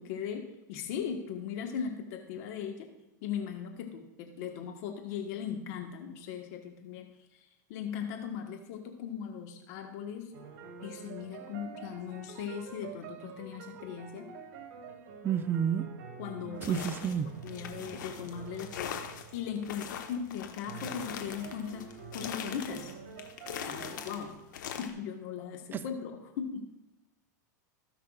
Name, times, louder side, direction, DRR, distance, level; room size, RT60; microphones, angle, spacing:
voice 1, 0.0-2.9 3.2-7.4 7.7-10.3 10.8-14.3 16.2-16.8 17.4-19.0 19.3-21.8 22.1-22.9 23.6-24.4 24.7-26.7, left 7 dB, 60° left, 1.4 m, -38 dB
sound 1, 10.3-19.8 20.7-24.3, right 6 dB, 60° right, 1.5 m, -47 dB
voice 2, 15.2-15.9 16.7-17.3, right 8 dB, 20° right, 0.5 m, -29 dB
sound 2, 16.6-24.9, left 8 dB, 75° left, 1.2 m, -42 dB
17.5 x 5.9 x 2.4 m
hypercardioid pair, 105°, 10 cm